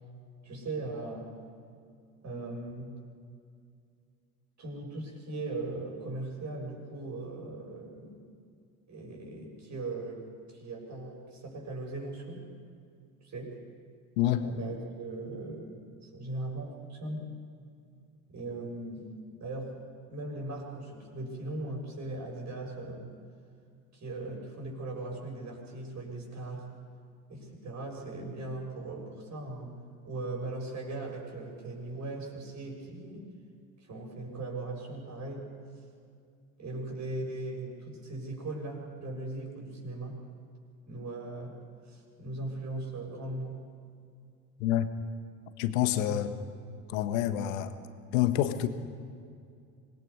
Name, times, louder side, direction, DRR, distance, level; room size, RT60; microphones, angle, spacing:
voice 1, 0.4-1.3 2.2-3.0 4.6-8.2 8.9-10.2 10.5-12.4 13.2-13.6 14.4-17.3 18.3-19.1 19.4-19.8 20.1-23.1 23.9-26.7 27.3-29.7 30.0-33.3 33.8-35.5 36.6-40.2 40.9-41.6 41.9-43.6 46.0-46.2, right 2 dB, 40° right, 0 dB, 6.7 m, -39 dB
voice 2, 45.6-46.3 46.9-47.7 48.1-48.7, left 12 dB, 65° left, 10 dB, 1.4 m, -27 dB
26.0 x 20.5 x 5.4 m, 2.3 s
figure-of-eight pair, 65°, 43 cm